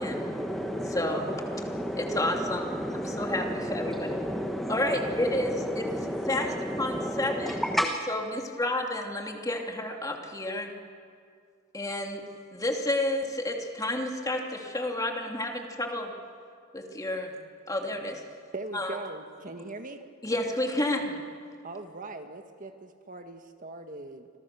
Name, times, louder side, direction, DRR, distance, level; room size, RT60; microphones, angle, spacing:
voice 1, 0.0-7.9, equal, ahead, 3 dB, 1.3 m, -32 dB
voice 2, 0.9-1.3 2.0-2.7 3.0-4.2 4.7-5.9 6.3-6.5 6.8-7.6 8.1-10.7 11.7-12.2 12.5-16.1 16.7-17.3 17.7-18.2 18.7-19.0 20.2-21.2, left 1 dB, 15° left, 2 dB, 2.8 m, -30 dB
voice 3, 18.5-20.0 21.6-24.3, right 2 dB, 40° right, 6 dB, 1.5 m, -40 dB
30.0 x 25.5 x 6.9 m, 2.2 s
head